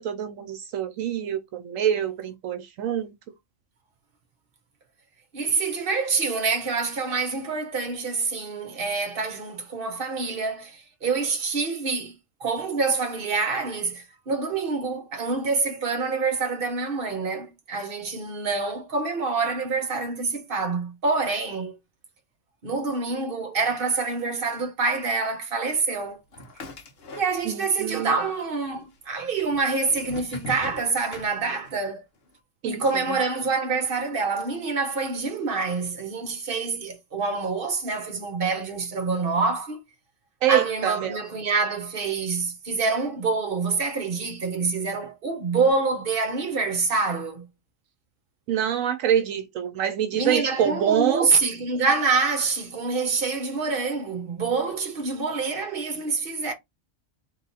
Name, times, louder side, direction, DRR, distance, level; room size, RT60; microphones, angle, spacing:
voice 1, 0.0-3.1 27.5-28.2 32.6-32.8 33.1-33.2 40.4-41.2 48.5-51.3, right 9 dB, 80° right, 1.0 m, -25 dB
voice 2, 5.3-12.1 12.4-21.8 22.6-26.2 27.2-32.0 32.6-39.8 40.5-47.5 50.1-56.5, right 4 dB, 45° right, 1.2 m, -26 dB
sound 1, 26.3-27.8 28.0-28.8 29.4-31.9, equal, 50° left, 1.1 m, -40 dB
3.9 x 3.0 x 4.0 m
omnidirectional pair, 1.4 m